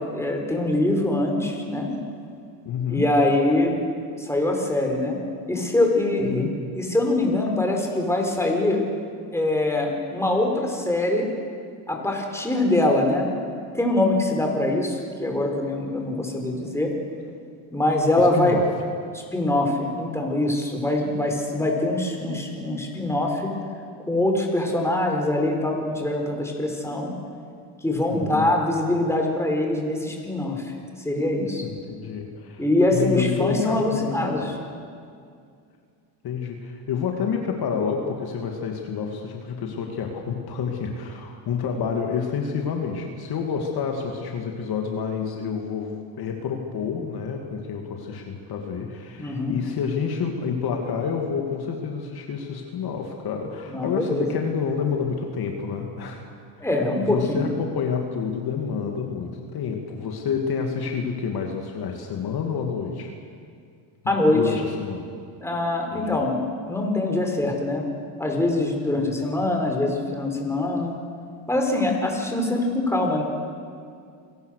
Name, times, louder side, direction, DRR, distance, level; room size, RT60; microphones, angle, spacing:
voice 1, 0.0-1.9 2.9-3.8 4.2-5.2 5.5-6.5 6.7-8.8 9.3-11.3 11.9-13.3 13.7-16.9 17.7-18.6 19.1-23.5 24.1-27.1 27.8-30.7 31.0-31.6 32.6-34.5 49.1-49.5 53.7-54.3 56.6-57.4 64.1-64.4 65.4-66.4 66.7-67.8 68.2-71.0 71.5-73.2, left 1 dB, 5° left, 1 dB, 4.7 m, -23 dB
voice 2, 2.6-3.1 6.2-6.6 18.2-18.6 28.1-28.6 31.6-32.6 32.9-34.5 36.2-56.3 56.6-56.7 57.0-63.1 64.0-65.1 65.9-66.2 68.9-69.2, left 6 dB, 50° left, 2 dB, 2.6 m, -29 dB
27.5 x 18.0 x 6.6 m, 2.3 s
supercardioid pair, 100°, 48 cm